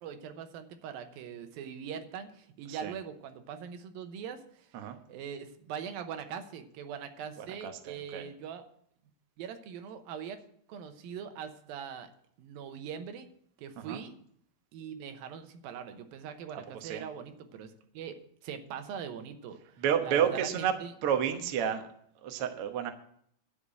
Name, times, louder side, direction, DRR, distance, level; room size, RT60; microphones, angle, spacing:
voice 1, 0.0-4.7 5.1-8.7 9.4-10.4 10.7-12.1 12.4-13.3 13.6-14.2 14.7-20.9, right 7 dB, 85° right, 8 dB, 2.8 m, -42 dB
voice 2, 7.4-8.2 13.8-14.0 16.8-17.0 19.8-20.7 21.0-21.8 22.2-22.9, right 8 dB, 70° right, 6 dB, 1.4 m, -30 dB
11.0 x 5.5 x 8.7 m, 0.66 s
omnidirectional pair, 4.1 m